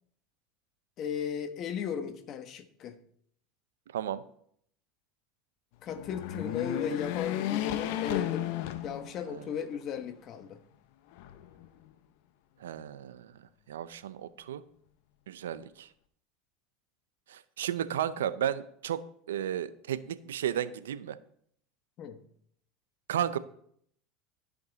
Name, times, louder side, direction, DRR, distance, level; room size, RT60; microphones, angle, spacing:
voice 1, 1.0-3.0 5.8-10.6 22.0-22.2, left 7 dB, 50° left, 1.1 m, -36 dB
voice 2, 3.9-4.2 9.3-9.5 12.6-13.3 13.7-14.6 15.3-15.9 17.3-21.2 23.1-23.4, right 10 dB, 90° right, 0.5 m, -33 dB
sound 1, 5.9-9.5 10.0-10.1 11.1-11.9, left 12 dB, 70° left, 0.7 m, -33 dB
13.5 x 5.3 x 4.0 m
hypercardioid pair, 90°, 0 cm